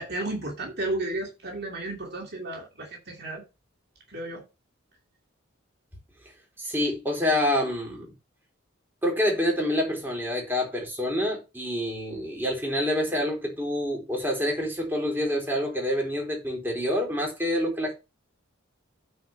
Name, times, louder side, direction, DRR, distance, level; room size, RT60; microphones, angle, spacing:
voice 1, 0.0-3.4 4.1-4.5, right 2 dB, 50° right, 2.7 m, -33 dB
voice 2, 6.6-8.1 9.0-17.9, left 1 dB, 10° right, 4.0 m, -27 dB
9.3 x 4.6 x 5.9 m
head